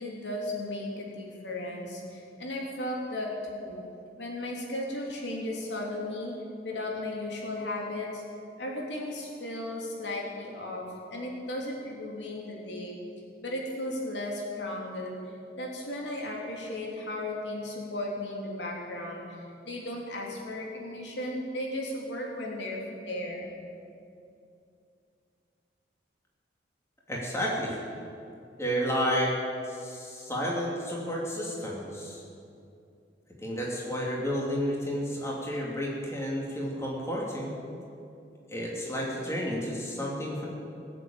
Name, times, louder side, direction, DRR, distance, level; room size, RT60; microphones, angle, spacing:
voice 1, 0.0-3.8 4.2-6.3 6.6-8.2 8.6-13.0 13.4-23.5, left 1 dB, 85° left, -2 dB, 3.1 m, -35 dB
voice 2, 27.1-27.8 28.6-29.3 29.7-32.2 33.4-37.5 38.5-40.5, equal, 15° left, -3 dB, 2.8 m, -31 dB
19.5 x 7.6 x 8.9 m, 2.6 s
head